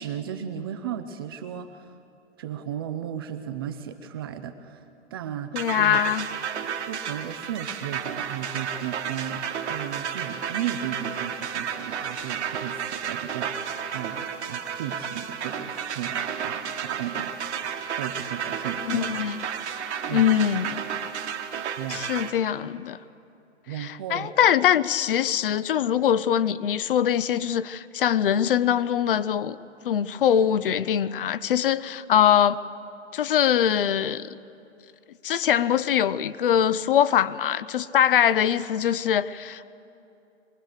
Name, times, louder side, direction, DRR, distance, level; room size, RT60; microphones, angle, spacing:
voice 1, 0.0-2.0 2.4-6.0 6.9-19.1 20.1-20.4 21.8-22.1 23.7-24.3, right 9 dB, 20° right, 8 dB, 0.4 m, -35 dB
voice 2, 5.5-6.3 18.9-19.4 20.1-20.8 21.9-23.0 23.8-29.6 29.8-32.6 33.1-34.3 35.2-39.6, left 9 dB, 45° left, 16 dB, 0.6 m, -23 dB
sound 1, 5.6-22.3, right 7 dB, 65° right, 1.7 m, -32 dB
22.5 x 19.0 x 6.5 m, 2.7 s
hypercardioid pair, 135°, 37 cm